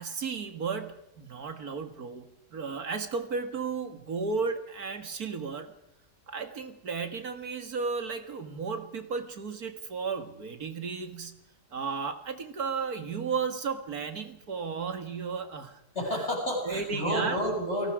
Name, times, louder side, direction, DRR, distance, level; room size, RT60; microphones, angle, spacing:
voice 1, 0.0-5.7 6.3-11.4 11.7-15.8 16.7-17.4, right 5 dB, 70° right, 8 dB, 2.4 m, -34 dB
voice 2, 15.9-17.9, equal, 45° left, -1 dB, 8.0 m, -30 dB
28.5 x 19.0 x 5.0 m, 0.86 s
omnidirectional pair, 1.6 m